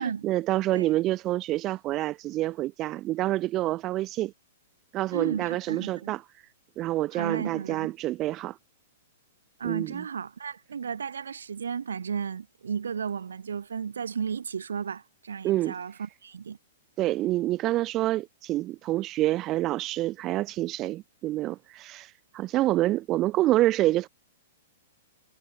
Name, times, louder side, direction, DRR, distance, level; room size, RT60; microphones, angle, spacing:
voice 1, 0.0-4.3 4.9-6.2 6.8-8.6 9.6-10.0 15.4-15.7 17.0-24.1, right 16 dB, 30° right, 3.0 m, -27 dB
voice 2, 5.1-6.1 7.1-7.9 9.6-16.6, right 6 dB, 75° right, 7.1 m, -34 dB
figure-of-eight pair, 110°, 0 cm